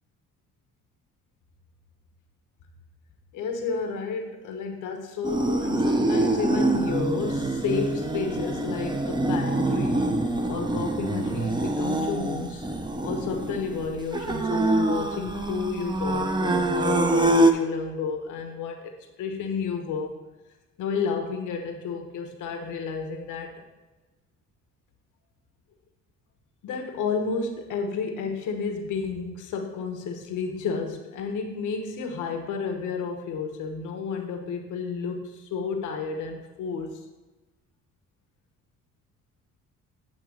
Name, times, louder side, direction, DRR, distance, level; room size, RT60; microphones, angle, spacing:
voice 1, 3.3-10.1 10.5-12.7 13.0-18.9 19.2-20.1 20.8-23.6 26.6-37.0, left 5 dB, 85° left, 4 dB, 1.1 m, -31 dB
sound 1, 5.2-17.5, right 2 dB, 15° right, 0.6 m, -25 dB
8.5 x 3.0 x 6.3 m, 1.1 s
cardioid pair, 90°, 30 cm